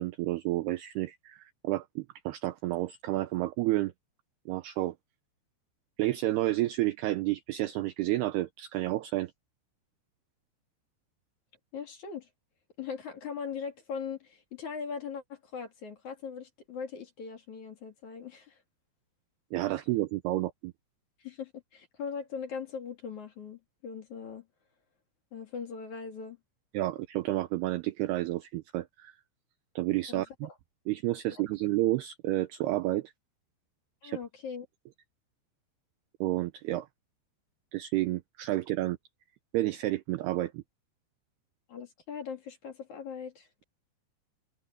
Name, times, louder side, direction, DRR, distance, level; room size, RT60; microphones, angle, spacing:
voice 1, 0.0-3.9 4.5-4.9 6.0-9.3 19.5-20.7 26.7-29.1 29.8-30.5 30.9-33.1 34.0-34.2 36.2-36.9 37.7-39.0 39.5-40.6, right 16 dB, 80° right, 2.3 m, -30 dB
voice 2, 11.7-12.3 12.8-18.6 21.2-24.5 25.3-26.4 30.1-30.5 31.3-31.4 34.0-34.7 41.7-43.6, left 6 dB, 45° left, 3.6 m, -40 dB
omnidirectional pair, 5.4 m